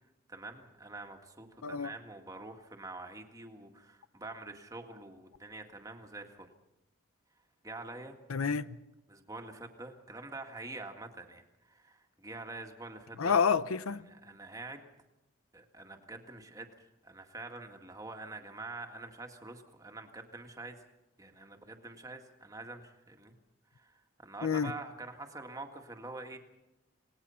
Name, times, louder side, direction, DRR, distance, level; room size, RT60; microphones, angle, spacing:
voice 1, 0.3-6.5 7.6-8.2 9.1-13.4 14.1-14.8 15.5-16.7 17.0-20.8 21.2-23.3 23.7-26.4, right 2 dB, 15° right, 1.9 m, -46 dB
voice 2, 8.3-8.7 13.2-14.0 24.4-24.7, left 6 dB, 90° left, 0.7 m, -28 dB
27.5 x 19.0 x 5.7 m
head